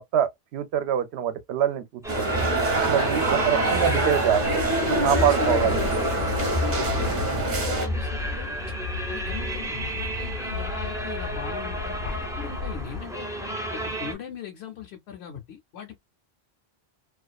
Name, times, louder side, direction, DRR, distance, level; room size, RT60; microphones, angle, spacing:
voice 1, 0.0-2.5 2.9-4.6 5.0-5.9, right 9 dB, 80° right, 0.8 m, -25 dB
sound 1, 2.0-14.1, right 1 dB, 5° right, 0.4 m, -32 dB
sound 2, 2.1-7.9, right 2 dB, 45° right, 0.8 m, -25 dB
voice 2, 3.2-4.0 5.2-5.9 6.5-8.6 9.1-13.3 13.7-16.0, left 8 dB, 85° left, 0.9 m, -39 dB
sound 3, 4.4-13.0, left 6 dB, 60° left, 0.6 m, -35 dB
2.4 x 2.3 x 2.2 m
omnidirectional pair, 1.1 m